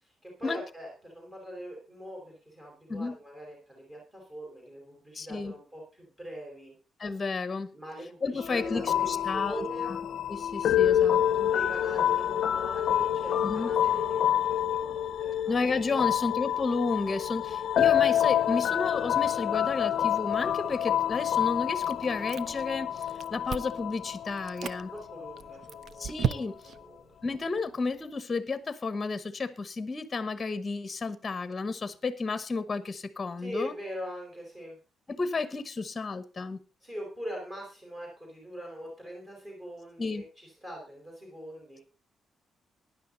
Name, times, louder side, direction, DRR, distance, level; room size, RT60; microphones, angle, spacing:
voice 1, 0.0-6.7 7.7-10.0 11.4-16.1 23.1-23.2 24.9-26.5 26.7-27.2 33.4-34.8 36.8-41.8, equal, 20° right, -1 dB, 4.7 m, -42 dB
voice 2, 5.1-5.5 7.0-7.7 8.2-10.0 10.3-11.5 13.4-13.7 15.5-23.0 23.3-24.9 26.0-26.5 27.2-33.7 35.1-36.6 40.0-40.3, left 4 dB, 25° left, 13 dB, 1.1 m, -32 dB
sound 1, 8.4-25.8, left 10 dB, 60° left, 0.6 m, -28 dB
Chewing mastication, 21.8-22.7 23.0-23.9 24.4-24.8 25.4-26.8, right 8 dB, 50° right, 0.6 m, -34 dB
16.0 x 10.5 x 4.0 m, 0.33 s
cardioid pair, 155°, 0 cm